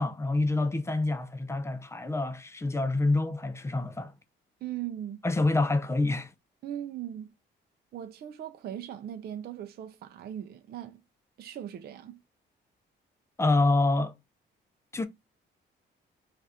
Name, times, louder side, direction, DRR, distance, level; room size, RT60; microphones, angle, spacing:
voice 1, 0.0-4.1 5.2-6.3 13.4-14.1 14.9-15.0, left 2 dB, 15° left, 0.4 m, -27 dB
voice 2, 4.6-5.2 6.6-7.4 7.9-11.0 11.4-12.2, right 11 dB, 55° right, 0.4 m, -39 dB
2.6 x 2.4 x 3.3 m
cardioid pair, 90°, 20 cm